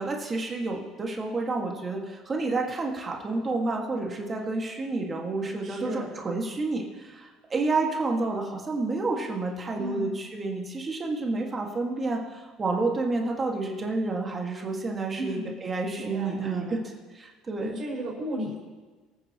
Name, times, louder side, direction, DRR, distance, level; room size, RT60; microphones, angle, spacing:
voice 1, 0.0-16.8 17.1-17.8, right 3 dB, 25° right, 0 dB, 1.7 m, -30 dB
voice 2, 5.6-6.1 9.7-10.1 15.2-15.4 16.0-16.7 17.6-18.6, right 1 dB, 40° right, -3 dB, 5.0 m, -34 dB
24.0 x 9.2 x 2.9 m, 1.3 s
cardioid pair, 125°, 0 cm